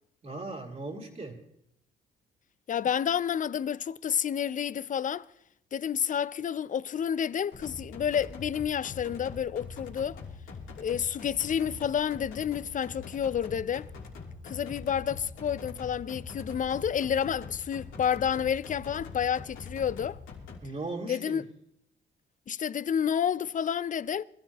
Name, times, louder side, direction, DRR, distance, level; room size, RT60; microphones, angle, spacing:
voice 1, 0.2-1.4 20.6-21.4, right 2 dB, 35° right, 2.8 m, -38 dB
voice 2, 2.7-5.3 5.7-10.2 10.8-13.9 14.4-20.2 21.1-21.4 22.5-24.2, left 8 dB, 40° left, 0.5 m, -30 dB
sound 1, 7.5-20.6, left 4 dB, 85° left, 3.0 m, -43 dB
24.5 x 13.5 x 3.0 m
cardioid pair, 90°, 20 cm